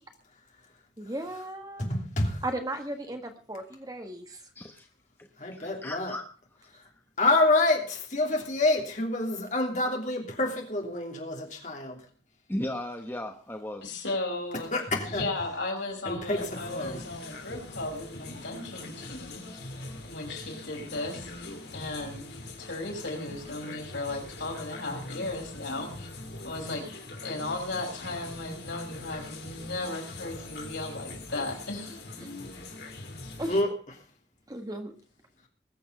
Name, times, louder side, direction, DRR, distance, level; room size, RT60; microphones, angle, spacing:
voice 1, 1.0-1.9 2.4-4.4 33.4-33.5 34.5-34.9, right 1 dB, 20° right, 5 dB, 1.5 m, -35 dB
voice 2, 1.8-2.4 5.4-6.1 7.2-11.5 14.7-15.3 16.0-17.0 33.5-33.7, left 2 dB, 40° left, 1 dB, 3.0 m, -27 dB
voice 3, 4.5-4.9 5.2-6.2 12.5-13.9, left 1 dB, 10° left, 4 dB, 0.9 m, -36 dB
voice 4, 13.8-14.7 15.1-19.7 20.0-22.2 22.6-26.1 26.4-32.0, left 2 dB, 80° left, 1 dB, 5.0 m, -36 dB
sound 1, 16.4-33.6, left 2 dB, 60° left, 3.0 m, -42 dB
20.5 x 7.2 x 5.4 m, 0.40 s
head